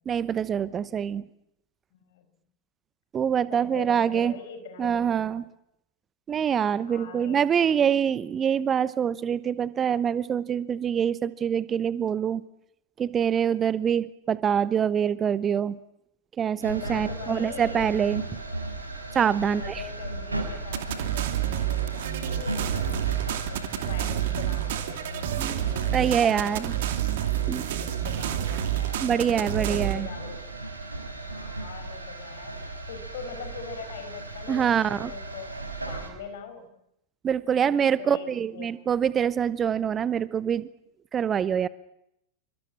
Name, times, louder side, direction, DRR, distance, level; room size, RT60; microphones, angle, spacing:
voice 1, 0.1-1.2 3.1-4.3 4.8-5.4 6.3-12.4 13.0-15.8 16.4-18.2 19.1-19.8 25.4-25.6 25.9-26.7 27.5-27.6 29.0-30.1 34.5-35.1 37.2-40.7 41.1-41.7, right 8 dB, 25° right, 18 dB, 0.9 m, -25 dB
voice 2, 1.9-2.4 3.5-5.4 6.9-7.8 16.7-17.9 19.5-23.1 23.5-27.1 27.8-29.0 29.3-30.4 31.3-32.6 32.9-35.6 35.9-36.7 37.6-38.9, left 6 dB, 55° left, 8 dB, 5.6 m, -42 dB
sound 1, 16.6-36.1, right 2 dB, 80° right, 5.3 m, -37 dB
sound 2, 20.7-30.0, right 12 dB, 55° right, 2.4 m, -29 dB
27.0 x 24.5 x 7.5 m, 0.80 s
figure-of-eight pair, 90°, 0 cm